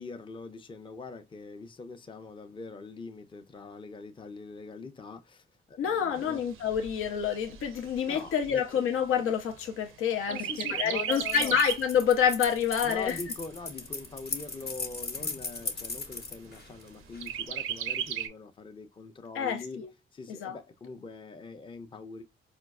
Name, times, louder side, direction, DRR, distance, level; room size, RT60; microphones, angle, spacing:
voice 1, 0.0-6.4 8.1-8.6 10.3-11.6 12.8-19.8 20.1-22.2, left 4 dB, 25° left, 0.5 m, -43 dB
voice 2, 5.8-13.2 19.3-19.9 20.3-20.6, left 8 dB, 85° left, 0.6 m, -28 dB
Chirp tweet, 6.2-9.9 10.3-12.0 12.4-12.5 12.8-13.8 14.4-14.5 14.9-15.0 15.4-15.9 17.2-18.3, right 10 dB, 80° right, 0.5 m, -36 dB
sound 1, 11.1-17.4, left 3 dB, 50° left, 0.8 m, -37 dB
4.3 x 2.3 x 2.2 m
cardioid pair, 75°, 21 cm